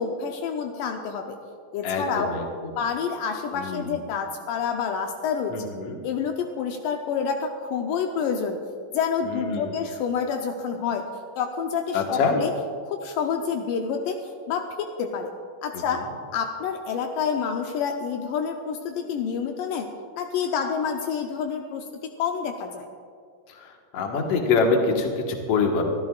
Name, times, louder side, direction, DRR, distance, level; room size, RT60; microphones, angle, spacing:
voice 1, 0.0-1.4 1.7-2.4 2.8-5.7 6.0-8.6 8.9-11.0 11.4-12.5 12.9-15.3 15.6-16.1 16.3-19.9 20.2-22.9, left 6 dB, 80° left, 3 dB, 2.3 m, -28 dB
voice 2, 1.8-2.7 3.5-4.0 5.5-6.0 9.3-9.8 11.9-12.3 15.7-16.1 23.5-25.8, left 4 dB, 55° left, 1 dB, 2.2 m, -25 dB
24.5 x 13.5 x 2.4 m, 2.1 s
omnidirectional pair, 3.9 m